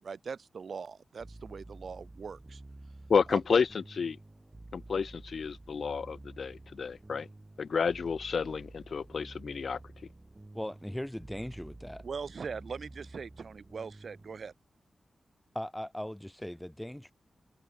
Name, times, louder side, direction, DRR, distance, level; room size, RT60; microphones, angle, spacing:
voice 1, 0.0-2.6 3.3-3.6 12.0-14.5, right 5 dB, 55° right, 1.9 m, -41 dB
sound 1, 1.2-14.5, right 2 dB, 15° right, 2.5 m, -50 dB
voice 2, 3.1-3.7 4.0-4.2 4.7-7.3 7.6-9.8, left 5 dB, 60° left, 0.7 m, -30 dB
voice 3, 10.5-12.0 15.5-17.1, equal, 5° left, 5.4 m, -39 dB
wide cardioid pair, 150°, 0 cm